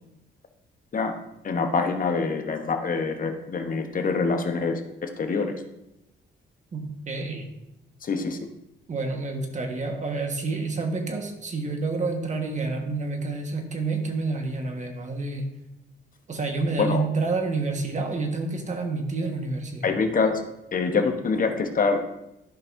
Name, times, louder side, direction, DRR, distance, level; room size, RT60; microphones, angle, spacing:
voice 1, 1.4-5.5 8.0-8.4 16.8-17.0 19.8-20.4 20.7-22.0, left 4 dB, 45° left, 6 dB, 1.1 m, -25 dB
voice 2, 6.7-7.5 8.9-15.4 16.3-19.8, right 3 dB, 35° right, 3 dB, 1.5 m, -29 dB
13.0 x 5.4 x 2.7 m, 0.88 s
cardioid pair, 90°, 20 cm